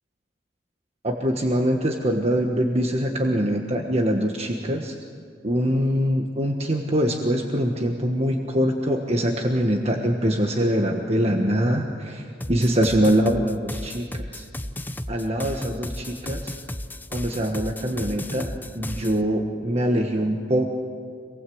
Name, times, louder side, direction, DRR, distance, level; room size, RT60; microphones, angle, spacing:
voice 1, 1.0-4.9 5.4-14.5 15.1-16.5 17.1-20.7, equal, 35° right, 2 dB, 1.4 m, -23 dB
sound 1, 12.4-19.2, left 1 dB, 10° left, 0.8 m, -34 dB
27.0 x 19.5 x 7.9 m, 2.3 s
head